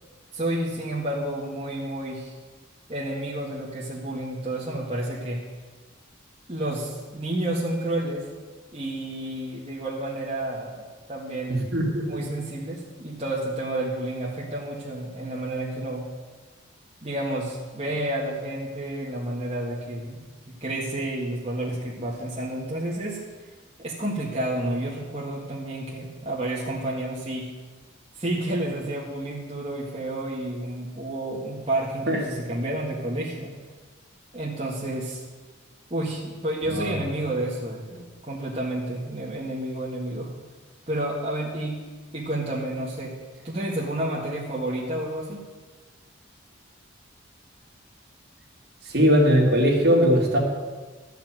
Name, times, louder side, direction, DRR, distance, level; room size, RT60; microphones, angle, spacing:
voice 1, 0.3-2.3 2.9-5.4 6.5-8.3 8.7-10.8 11.1-11.6 12.0-16.0 17.0-20.2 20.6-23.2 23.8-27.5 28.2-33.5 34.3-35.2 35.9-40.3 40.9-41.8 42.1-43.1 43.4-45.4, right 1 dB, 30° right, -6 dB, 1.8 m, -30 dB
voice 2, 11.5-12.2 32.1-32.2 36.7-37.0 48.9-50.4, equal, 55° right, -1 dB, 2.6 m, -20 dB
13.0 x 5.9 x 8.9 m, 1.4 s
head